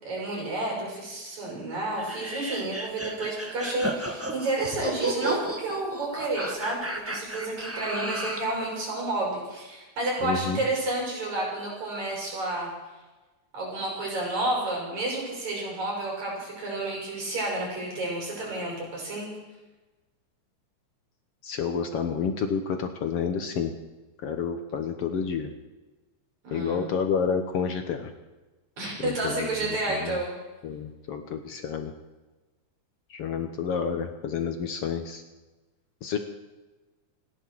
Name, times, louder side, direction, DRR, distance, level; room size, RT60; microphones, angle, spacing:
voice 1, 0.0-12.7 13.5-19.3 26.4-26.8 28.8-30.3, right 2 dB, 65° right, -3 dB, 7.3 m, -30 dB
sound 1, 2.0-8.5, right 1 dB, 15° right, 0.5 m, -33 dB
voice 2, 10.2-10.6 21.4-23.7 24.2-25.5 26.5-28.1 29.0-29.6 29.9-30.2 30.6-31.9 33.1-35.2 36.0-36.2, left 6 dB, 60° left, 6 dB, 1.8 m, -29 dB
29.5 x 10.5 x 4.7 m, 1.2 s
omnidirectional pair, 3.4 m